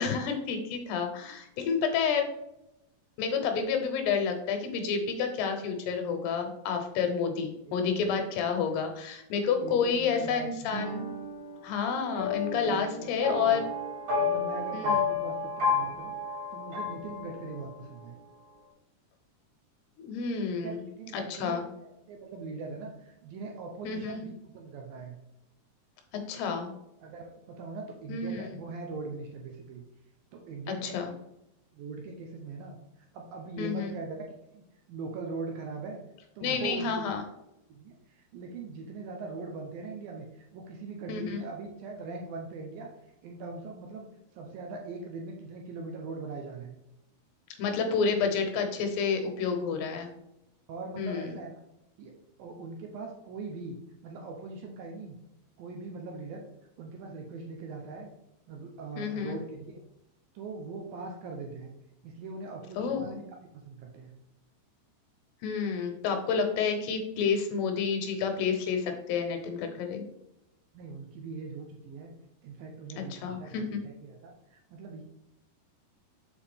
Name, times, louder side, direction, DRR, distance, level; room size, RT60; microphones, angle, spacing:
voice 1, 0.0-2.3 3.2-11.0 11.6-13.6 14.7-15.0 20.0-20.8 21.1-21.6 23.8-24.2 26.3-26.7 28.1-28.5 30.8-31.1 33.6-34.0 36.4-37.2 41.1-41.4 47.6-50.1 51.0-51.4 59.0-59.3 62.8-63.1 65.4-70.1 73.0-73.8, left 6 dB, 80° left, 5 dB, 2.9 m, -29 dB
voice 2, 7.6-8.3 8.6-8.8 9.5-10.7 12.5-13.6 14.2-18.2 20.5-25.2 27.0-29.8 30.3-31.0 31.7-32.8 33.1-34.2 34.5-34.6 34.9-36.0 36.4-37.1 37.7-42.9 43.2-44.1 44.3-46.8 50.7-51.5 52.0-52.1 52.4-53.8 54.0-55.2 55.6-56.4 56.8-58.1 58.5-59.7 60.4-61.7 62.0-63.2 63.5-64.1 70.7-72.1 72.4-75.0, right 3 dB, 75° right, 1 dB, 2.2 m, -41 dB
sound 1, 10.7-17.7, left 4 dB, 60° right, 3.8 m, -32 dB
6.9 x 4.6 x 3.5 m, 0.87 s
omnidirectional pair, 4.8 m